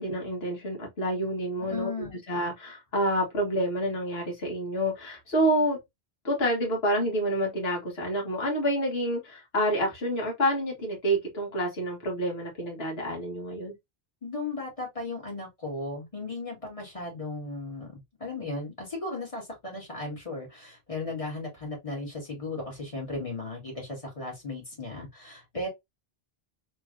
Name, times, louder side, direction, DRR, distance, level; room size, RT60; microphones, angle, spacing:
voice 1, 0.0-1.9 2.3-5.8 6.2-13.7, equal, 75° left, 1.7 m, -28 dB
voice 2, 1.6-2.1 14.2-25.7, left 2 dB, 35° left, 2.1 m, -36 dB
3.7 x 3.1 x 2.5 m
omnidirectional pair, 1.0 m